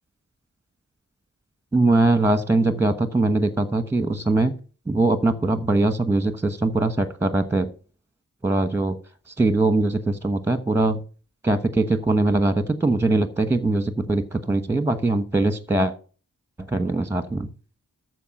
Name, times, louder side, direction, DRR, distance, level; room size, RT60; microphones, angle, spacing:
voice 1, 1.7-4.5 4.9-7.7 8.4-9.0 9.4-11.0 11.4-15.9 16.7-17.5, right 2 dB, 5° right, 10 dB, 1.1 m, -21 dB
14.0 x 4.8 x 5.9 m, 0.38 s
wide cardioid pair, 85°, 34 cm